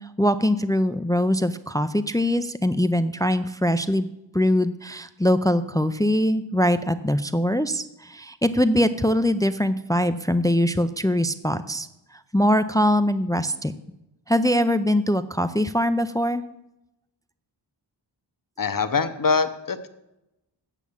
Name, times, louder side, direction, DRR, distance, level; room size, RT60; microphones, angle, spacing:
voice 1, 0.0-4.1 4.3-13.7 14.3-16.4, left 1 dB, 10° left, 12 dB, 0.3 m, -22 dB
voice 2, 18.6-19.9, left 5 dB, 45° left, 10 dB, 0.8 m, -23 dB
8.3 x 7.2 x 7.1 m, 0.91 s
wide cardioid pair, 85°, 45 cm